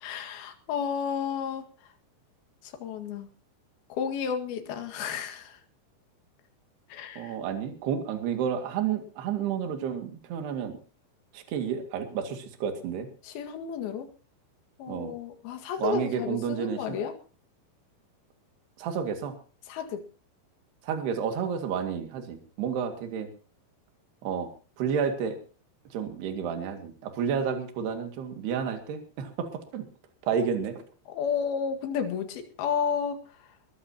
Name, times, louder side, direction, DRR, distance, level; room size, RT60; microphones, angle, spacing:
voice 1, 0.0-1.6 2.8-3.3 4.0-5.6 6.9-7.4 13.2-14.1 14.8-17.1 19.7-20.0 31.2-33.2, left 7 dB, 60° left, 5 dB, 3.5 m, -32 dB
voice 2, 7.2-10.8 11.3-13.1 14.9-15.2 15.8-17.0 18.8-19.3 20.8-23.3 24.2-24.5 24.8-25.4 25.9-29.8 30.3-30.8, right 7 dB, 60° right, 5 dB, 4.0 m, -31 dB
22.0 x 15.5 x 2.9 m, 0.37 s
omnidirectional pair, 5.5 m